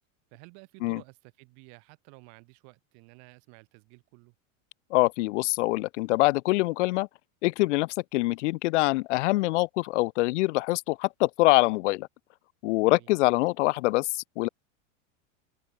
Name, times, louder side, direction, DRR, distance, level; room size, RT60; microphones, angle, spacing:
voice 1, 0.3-4.3 12.8-13.1, right 40 dB or more, 45° right, 7.9 m, -53 dB
voice 2, 4.9-7.1 7.4-12.1 12.6-14.5, left 21 dB, 60° left, 1.5 m, -24 dB
open air
supercardioid pair, 170°, 40 cm